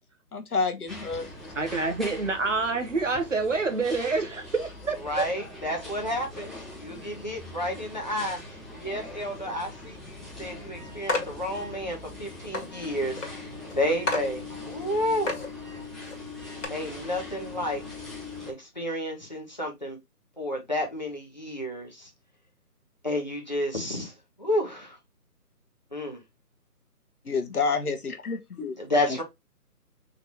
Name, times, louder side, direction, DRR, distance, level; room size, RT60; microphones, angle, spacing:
voice 1, 0.3-1.3 27.2-28.8 29.1-29.2, left 4 dB, 70° left, 1.1 m, -29 dB
sound 1, 0.9-18.5, left 2 dB, ahead, 0.6 m, -42 dB
voice 2, 1.6-5.2, right 3 dB, 50° right, 1.0 m, -27 dB
voice 3, 5.0-15.4 16.7-17.8 18.5-20.0 20.4-22.1 23.0-24.1 24.4-25.0 25.9-26.2 28.8-29.2, left 1 dB, 30° left, 0.9 m, -31 dB
sound 2, 11.1-11.3 12.1-12.2 12.5-12.7 13.2-13.3 13.7-13.8 14.1-14.3 14.8-14.9 15.2-15.5 16.0-16.2 16.6-16.7, left 3 dB, 50° left, 1.6 m, -29 dB
3.8 x 3.7 x 2.8 m
figure-of-eight pair, 175°, 47 cm